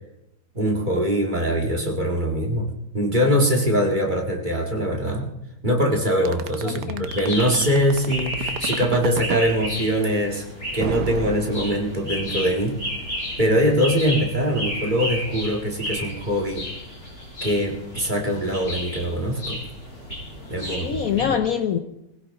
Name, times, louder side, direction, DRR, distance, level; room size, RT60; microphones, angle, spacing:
voice 1, 0.5-2.7 2.9-5.3 5.6-10.4 10.7-12.8 13.4-16.7 17.4-19.6 20.5-21.3, equal, 25° right, 0 dB, 2.1 m, -22 dB
sound 1, 6.3-9.5 10.8-12.2, right 8 dB, 70° right, 1.3 m, -30 dB
voice 2, 6.6-7.0 20.7-21.8, left 8 dB, 60° left, 7 dB, 1.1 m, -24 dB
sound 2, 7.1-21.2, equal, 35° left, 7.5 m, -33 dB
20.5 x 15.5 x 3.8 m, 0.88 s
omnidirectional pair, 2.0 m